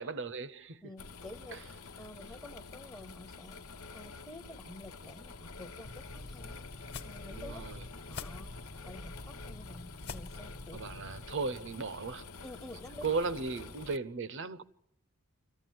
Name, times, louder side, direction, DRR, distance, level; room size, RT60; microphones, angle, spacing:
voice 1, 0.0-0.8 1.5-1.6 7.3-7.8 10.7-12.2 13.0-14.6, right 4 dB, 55° right, 0.8 m, -36 dB
voice 2, 0.8-1.5 2.0-3.6 3.9-6.6 7.0-7.6 8.1-10.8 12.4-13.1, left 1 dB, 15° left, 0.7 m, -49 dB
sound 1, 1.0-14.0, left 4 dB, 70° left, 1.0 m, -48 dB
sound 2, 5.8-11.3, left 2 dB, 50° left, 1.2 m, -46 dB
25.5 x 14.5 x 9.3 m
head